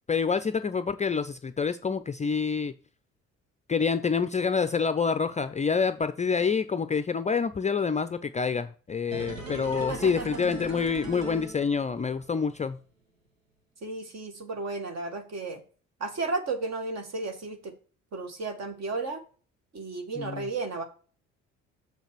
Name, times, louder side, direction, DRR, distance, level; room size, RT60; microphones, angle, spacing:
voice 1, 0.1-2.7 3.7-12.8 20.2-20.5, left 5 dB, 20° left, 11 dB, 0.5 m, -27 dB
sound 1, 9.1-12.2 12.5-12.6, right 2 dB, 85° right, 1.3 m, -39 dB
voice 2, 9.7-10.4 13.8-15.6 16.0-17.7 18.1-19.2 19.7-20.8, right 3 dB, 40° right, 5 dB, 2.0 m, -33 dB
6.8 x 6.5 x 4.7 m, 0.40 s
figure-of-eight pair, 45°, 39 cm